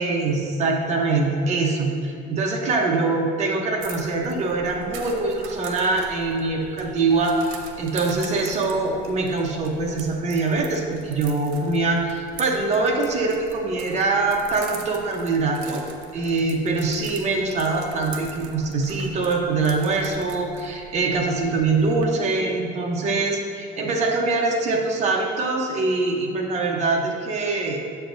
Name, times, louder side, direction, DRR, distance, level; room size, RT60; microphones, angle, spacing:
voice 1, 0.0-15.8 16.1-27.8, right 3 dB, 35° right, 0 dB, 0.8 m, -23 dB
sound 1, 3.8-22.0, right 5 dB, 85° right, 0.8 m, -42 dB
8.0 x 6.8 x 2.6 m, 2.5 s
cardioid pair, 160°, 21 cm